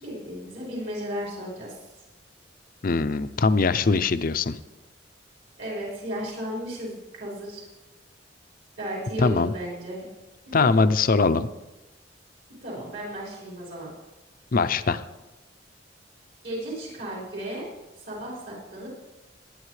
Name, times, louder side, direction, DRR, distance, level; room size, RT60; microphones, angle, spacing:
voice 1, 0.0-1.8 5.6-7.6 8.8-10.1 10.5-10.8 12.6-13.9 16.4-17.7 18.1-18.9, equal, 70° right, -5 dB, 5.0 m, -34 dB
voice 2, 2.8-4.6 9.2-9.5 10.5-11.5 14.5-15.0, left 4 dB, 50° left, 11 dB, 0.5 m, -22 dB
19.5 x 9.8 x 3.3 m, 1.0 s
head